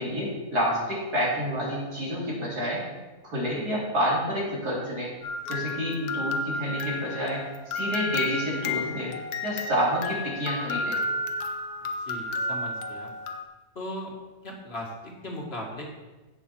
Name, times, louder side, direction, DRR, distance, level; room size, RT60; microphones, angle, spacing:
voice 1, 0.0-2.8 3.2-5.1 5.5-7.4 7.7-9.1 9.4-11.0, equal, 90° right, -6 dB, 4.2 m, -28 dB
sound 1, 5.2-13.4, left 2 dB, 75° left, 1.4 m, -32 dB
voice 2, 12.0-13.1 13.8-14.1 14.4-15.9, left 1 dB, 40° left, -1 dB, 2.0 m, -37 dB
16.0 x 6.0 x 4.5 m, 1.2 s
omnidirectional pair, 1.6 m